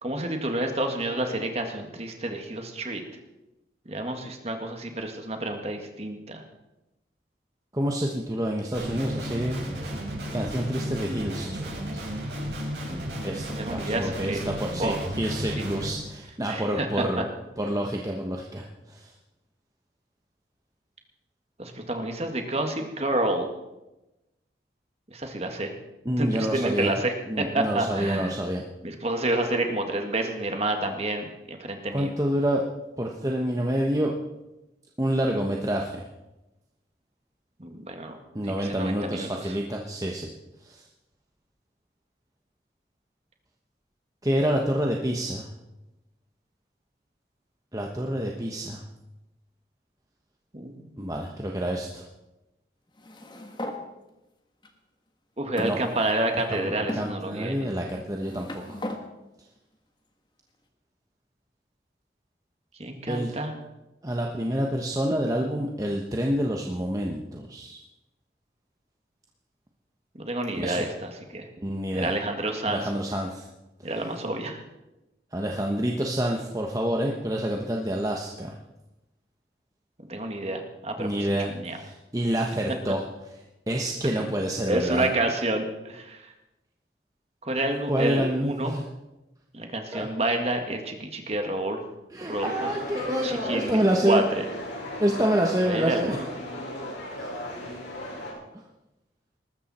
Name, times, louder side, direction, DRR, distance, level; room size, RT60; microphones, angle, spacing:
voice 1, 0.0-3.0 3.9-6.4 13.6-14.4 14.8-15.1 15.6-15.7 16.5-17.2 21.6-23.5 25.1-25.7 26.2-28.3 28.8-32.1 37.6-38.2 38.4-39.6 50.5-50.8 55.4-57.7 62.8-63.5 70.1-71.5 71.9-72.9 73.8-74.6 80.0-81.8 84.0-84.1 84.7-86.3 87.4-88.8 89.5-91.8 92.2-92.7 93.2-94.4 95.7-96.2, right 1 dB, 35° right, 4 dB, 2.0 m, -29 dB
voice 2, 7.7-9.6 10.3-12.1 13.2-17.3 17.6-19.1 26.0-27.0 27.3-28.6 31.9-32.6 33.0-34.1 35.0-36.0 38.3-40.3 40.6-40.8 44.2-45.5 47.7-48.8 51.0-52.0 55.6-55.8 56.3-58.8 63.1-63.3 64.0-67.8 70.6-70.8 71.6-72.1 72.7-73.4 75.3-78.5 81.0-83.1 83.7-85.1 87.9-88.8 89.9-90.1 92.1-94.2 95.0-96.2 97.2-97.3, equal, 20° right, 0 dB, 1.1 m, -28 dB
Guitar, 8.7-15.9, equal, 70° right, 6.1 m, -33 dB
sound 1, 53.0-53.8 54.6-54.7 55.6-56.4 56.9-57.1 58.0-59.0, left 1 dB, 25° left, 1.5 m, -36 dB
sound 2, 92.3-98.3, left 1 dB, 90° left, 5.4 m, -36 dB
19.5 x 14.0 x 4.4 m, 0.99 s
head